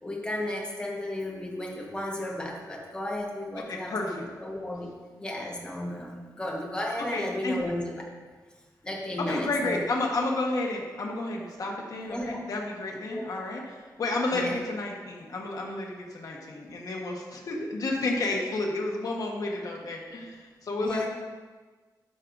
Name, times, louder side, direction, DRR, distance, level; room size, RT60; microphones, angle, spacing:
voice 1, 0.0-4.9 5.2-8.0 8.8-9.8 12.1-12.4 13.1-13.4 14.3-14.5 20.8-21.1, left 1 dB, 15° left, -2 dB, 1.2 m, -34 dB
voice 2, 3.7-4.3 7.1-7.6 9.3-21.1, left 2 dB, 55° left, -1 dB, 1.2 m, -31 dB
10.5 x 6.5 x 2.6 m, 1.4 s
wide cardioid pair, 160°, 7 cm